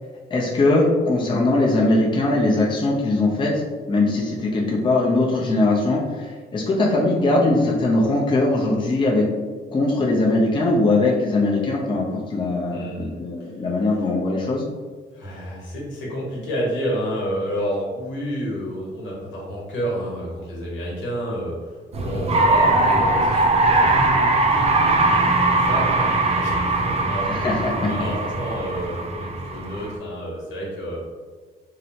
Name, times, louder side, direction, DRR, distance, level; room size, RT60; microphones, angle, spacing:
voice 1, 0.3-3.6 3.9-9.3 9.7-14.6 27.3-27.9, left 2 dB, 25° left, -3 dB, 0.5 m, -20 dB
voice 2, 12.7-13.1 13.4-13.5 13.9-14.1 15.1-23.8 24.5-27.4 27.8-31.0, equal, 75° left, -5 dB, 1.0 m, -30 dB
sound 1, 21.9-29.9, right 2 dB, 30° right, 0.4 m, -20 dB
2.8 x 2.1 x 2.7 m, 1.4 s
cardioid pair, 90°, 20 cm